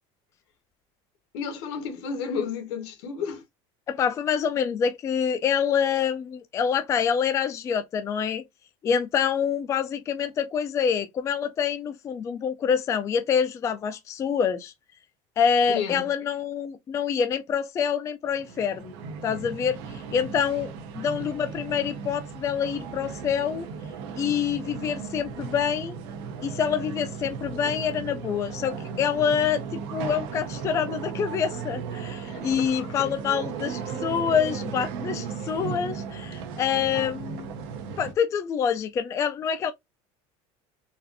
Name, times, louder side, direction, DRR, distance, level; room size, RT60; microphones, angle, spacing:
voice 1, 1.3-3.4 15.7-16.0 32.3-33.1 36.9-37.1, left 6 dB, 85° left, 1.3 m, -32 dB
voice 2, 3.9-8.4 8.8-14.7 15.4-18.9 19.2-23.7 24.2-25.9 26.4-29.6 29.9-37.5 38.0-39.7, left 7 dB, 20° left, 0.3 m, -26 dB
sound 1, 18.2-38.1, right 6 dB, 80° right, 0.9 m, -36 dB
4.1 x 2.5 x 2.5 m
cardioid pair, 155°, 14 cm